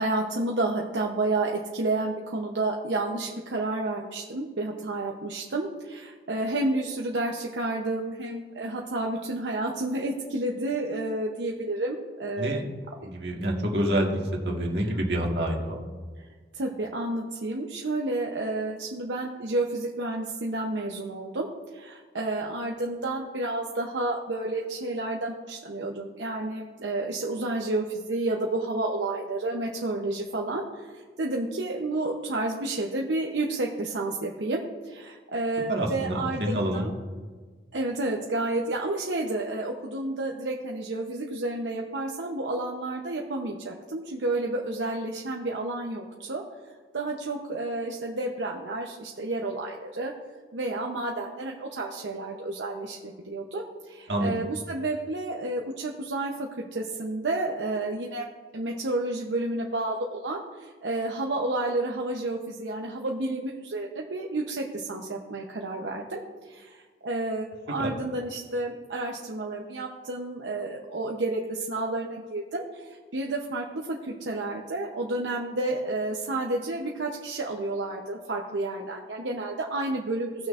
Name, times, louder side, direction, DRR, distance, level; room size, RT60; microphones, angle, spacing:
voice 1, 0.0-12.6 13.0-13.1 14.8-14.9 16.2-16.3 16.6-30.9 31.2-36.9 37.7-46.4 46.9-50.1 50.5-56.3 56.7-58.3 58.5-66.8 67.0-80.5, right 2 dB, 85° right, 0 dB, 0.8 m, -30 dB
voice 2, 13.0-15.9 35.7-36.9 54.1-54.4 67.8-67.9, right 1 dB, 65° right, 0 dB, 1.7 m, -27 dB
17.5 x 6.1 x 2.5 m, 1.5 s
head